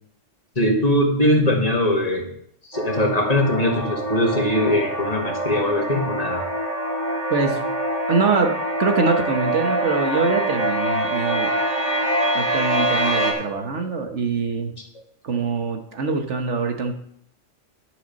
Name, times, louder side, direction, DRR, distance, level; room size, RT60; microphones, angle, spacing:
voice 1, 0.6-2.3 2.7-6.4, equal, 30° left, 0 dB, 1.9 m, -21 dB
sound 1, 2.7-13.3, right 1 dB, 35° right, 2.1 m, -25 dB
voice 2, 7.3-7.8 8.1-11.5 12.3-14.7 15.2-16.9, right 4 dB, 70° right, 5 dB, 1.5 m, -24 dB
11.5 x 6.7 x 5.3 m, 0.68 s
omnidirectional pair, 1.3 m